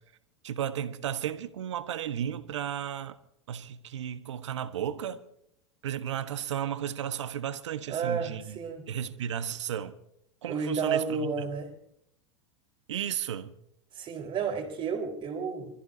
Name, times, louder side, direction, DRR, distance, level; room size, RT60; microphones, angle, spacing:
voice 1, 0.4-3.2 3.5-5.2 5.8-8.6 8.9-9.9 10.4-11.5 12.9-13.5, right 9 dB, 80° right, 1.3 m, -34 dB
voice 2, 7.9-8.9 10.5-11.7 13.9-15.7, right 5 dB, 35° right, 4.5 m, -31 dB
29.0 x 14.5 x 2.8 m
hypercardioid pair, 95°, 15 cm